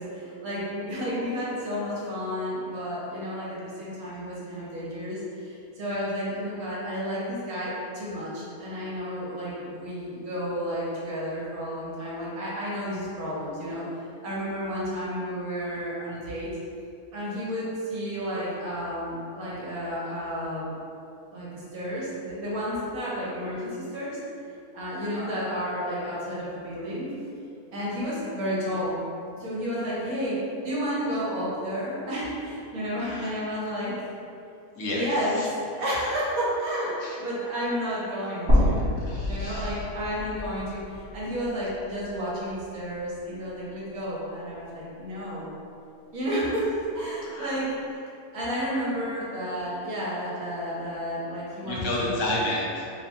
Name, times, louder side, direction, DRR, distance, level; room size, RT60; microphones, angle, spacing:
voice 1, 0.0-16.5 17.1-20.7 21.3-24.2 24.7-27.1 27.7-29.0 29.3-30.4 30.6-34.1 34.8-38.9 39.3-45.5 46.1-48.0 48.3-52.2, equal, 70° right, -7 dB, 1.4 m, -31 dB
voice 2, 34.8-35.1 35.4-35.5 37.0-37.2 39.0-39.8 47.2-47.5 51.6-52.9, left 1 dB, 70° left, -5 dB, 1.1 m, -30 dB
sound 1, 38.5-42.6 43.0-43.1 44.5-44.6, left 1 dB, 25° right, 0.6 m, -27 dB
3.3 x 2.2 x 4.2 m, 2.6 s
omnidirectional pair, 1.6 m